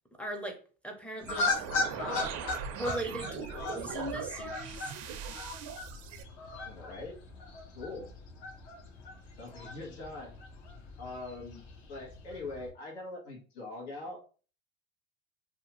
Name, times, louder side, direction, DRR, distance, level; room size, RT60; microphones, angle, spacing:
voice 1, 0.2-0.6 0.8-1.7 2.0-2.4 2.7-4.9, right 1 dB, 5° left, 2 dB, 0.5 m, -39 dB
sound 1, 1.2-12.7, left 3 dB, 60° left, 0.9 m, -38 dB
sound 2, 1.2-6.2, right 7 dB, 50° right, 0.5 m, -40 dB
voice 2, 6.6-7.1 7.7-8.1 9.4-10.3 11.0-11.6 11.9-14.3, left 2 dB, 85° left, 0 dB, 1.1 m, -42 dB
2.7 x 2.3 x 2.9 m, 0.38 s
supercardioid pair, 110°, 34 cm